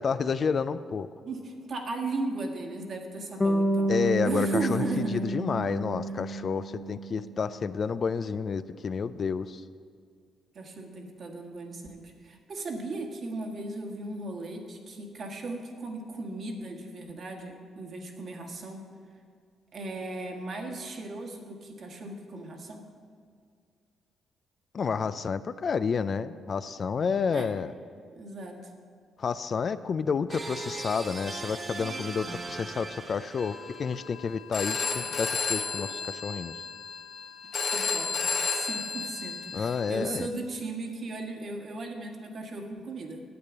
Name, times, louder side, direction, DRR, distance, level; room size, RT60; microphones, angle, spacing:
voice 1, 0.0-1.1 3.9-9.6 24.7-27.7 29.2-36.5 39.5-40.3, left 5 dB, 45° left, 13 dB, 0.4 m, -30 dB
voice 2, 1.2-3.9 4.2-5.3 10.5-18.8 19.7-22.9 27.3-27.5 28.1-28.6 37.6-43.2, right 2 dB, 55° right, 2 dB, 1.7 m, -36 dB
Bass guitar, 3.4-7.5, right 1 dB, 20° left, 0.8 m, -29 dB
sound 1, 30.3-34.0, right 3 dB, 35° right, 1.0 m, -39 dB
Telephone, 33.4-40.3, left 5 dB, 60° left, 1.9 m, -33 dB
9.5 x 8.4 x 7.2 m, 2.2 s
cardioid pair, 90°, 0 cm